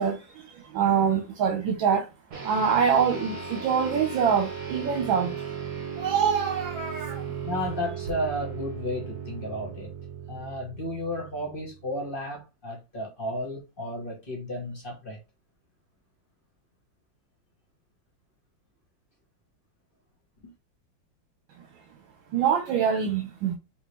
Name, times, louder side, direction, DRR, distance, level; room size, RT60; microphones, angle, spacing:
voice 1, 0.0-2.1 2.4-5.3 5.8-7.4 22.3-23.5, right 7 dB, 75° right, 1.6 m, -25 dB
sound 1, 2.3-12.0, right 7 dB, 55° right, 1.9 m, -37 dB
voice 2, 7.4-9.9 10.3-15.2, left 1 dB, 35° left, 1.1 m, -33 dB
5.0 x 2.9 x 3.1 m
omnidirectional pair, 2.2 m